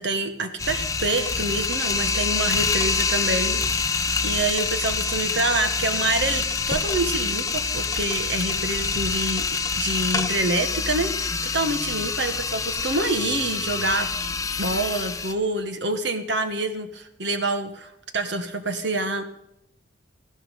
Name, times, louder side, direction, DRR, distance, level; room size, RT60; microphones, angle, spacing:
voice 1, 0.0-3.6 4.2-9.5 9.7-14.1 14.6-19.2, right 2 dB, 60° right, 9 dB, 1.5 m, -27 dB
sound 1, 0.6-15.3, left 4 dB, 15° left, 0.9 m, -26 dB
19.0 x 14.5 x 5.4 m, 0.81 s
head